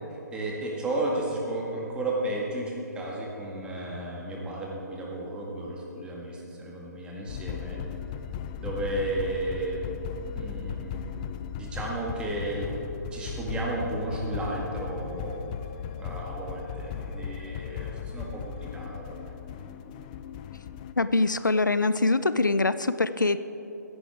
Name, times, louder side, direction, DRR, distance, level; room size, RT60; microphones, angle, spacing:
voice 1, 0.3-7.8 8.6-9.8 10.4-11.2 11.5-12.7 13.1-15.3 16.0-19.3, right 2 dB, 10° right, -3 dB, 2.0 m, -33 dB
sound 1, 7.3-20.9, left 8 dB, 25° left, 0.4 m, -37 dB
voice 2, 21.0-23.4, left 3 dB, 85° left, 13 dB, 0.5 m, -24 dB
15.5 x 11.0 x 4.6 m, 3.0 s
figure-of-eight pair, 135°, 10 cm